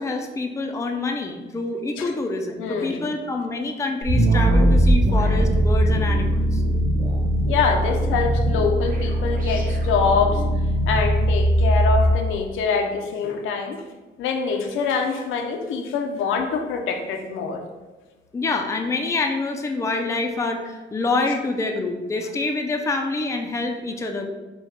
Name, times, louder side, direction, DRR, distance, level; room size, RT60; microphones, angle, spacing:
voice 1, 0.0-6.6 18.3-24.3, left 3 dB, 15° left, 3 dB, 0.4 m, -26 dB
voice 2, 2.6-3.0 7.5-10.4 10.9-13.8 14.2-17.6, left 5 dB, 85° left, 3 dB, 0.6 m, -24 dB
sound 1, 4.0-12.2, right 1 dB, 45° right, 1.0 m, -20 dB
4.6 x 2.3 x 3.5 m, 1.2 s
cardioid pair, 90°, 20 cm